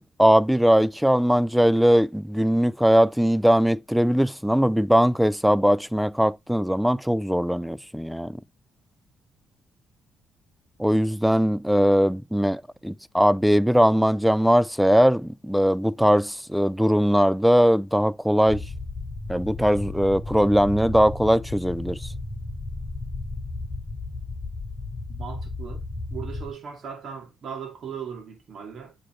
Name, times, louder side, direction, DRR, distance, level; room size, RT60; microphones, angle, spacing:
voice 1, 0.0-8.4 10.8-18.6 19.3-22.1, equal, ahead, 0.3 m, -20 dB
sound 1, 18.5-26.5, left 2 dB, 20° left, 2.7 m, -34 dB
voice 2, 25.1-25.8 26.1-28.9, right 7 dB, 60° right, 2.4 m, -38 dB
7.4 x 4.9 x 3.1 m
cardioid pair, 90°, 0 cm